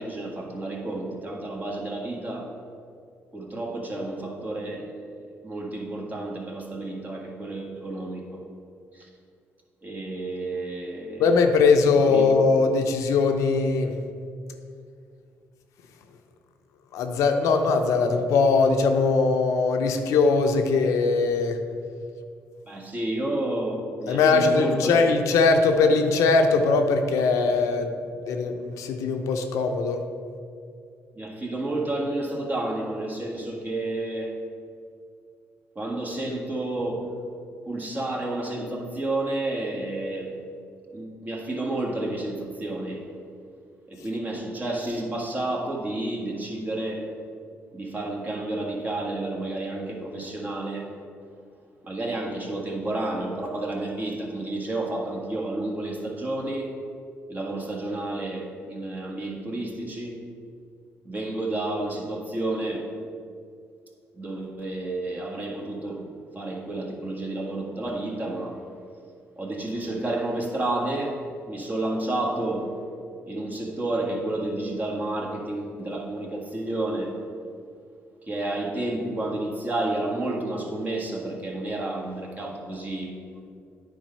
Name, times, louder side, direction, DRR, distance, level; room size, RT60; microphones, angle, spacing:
voice 1, 0.0-2.5 3.3-5.0 5.4-8.4 8.9-9.1 9.8-11.4 12.1-12.2 22.7-24.9 31.1-34.4 35.7-37.1 37.6-40.3 40.9-43.1 43.9-47.1 47.7-50.9 51.8-56.7 57.3-60.2 61.0-62.9 64.1-66.0 66.3-68.6 69.4-72.7 73.3-77.2 78.2-83.2, right 2 dB, 30° right, -1 dB, 1.7 m, -30 dB
voice 2, 11.2-13.9 16.9-21.6 24.1-27.9 28.3-30.0, left 4 dB, 85° left, 5 dB, 0.7 m, -21 dB
9.3 x 4.0 x 5.5 m, 2.3 s
supercardioid pair, 70°, 5 cm